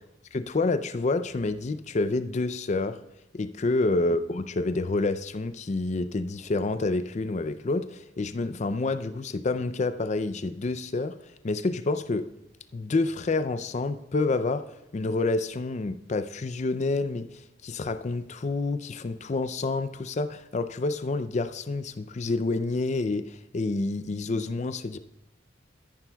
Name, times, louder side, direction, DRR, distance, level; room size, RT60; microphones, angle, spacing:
voice 1, 0.3-3.0 3.3-11.2 11.4-12.3 12.7-14.7 14.9-25.0, left 3 dB, 35° left, 12 dB, 0.4 m, -28 dB
14.0 x 10.5 x 2.3 m, 0.97 s
head